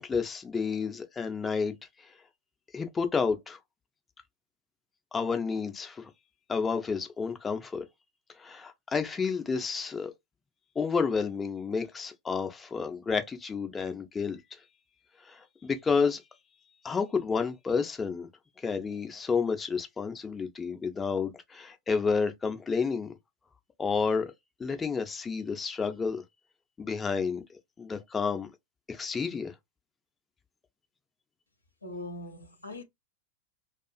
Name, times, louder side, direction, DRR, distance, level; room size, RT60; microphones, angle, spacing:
voice 1, 0.0-1.7 2.7-3.6 5.1-6.1 6.5-7.9 8.4-10.1 10.8-14.4 15.2-16.2 16.8-18.3 18.6-23.1 23.8-24.3 24.6-26.2 26.8-28.5 28.9-29.5, left 5 dB, 15° left, 0.4 m, -30 dB
voice 2, 31.8-32.8, left 1 dB, 80° left, 0.5 m, -41 dB
2.4 x 2.4 x 2.3 m
figure-of-eight pair, 90°, 0 cm